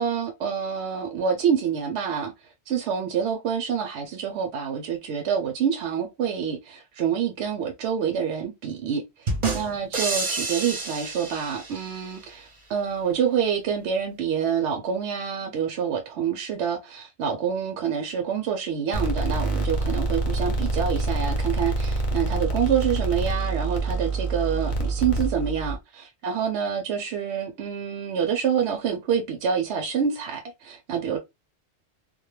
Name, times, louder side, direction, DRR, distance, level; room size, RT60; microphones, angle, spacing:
voice 1, 0.0-2.3 2.7-31.2, right 7 dB, 80° right, 0.8 m, -27 dB
sound 1, 9.3-12.1, right 3 dB, 45° right, 0.7 m, -29 dB
sound 2, 18.9-25.8, right 2 dB, 50° left, 0.7 m, -26 dB
2.2 x 2.1 x 3.0 m
omnidirectional pair, 1.1 m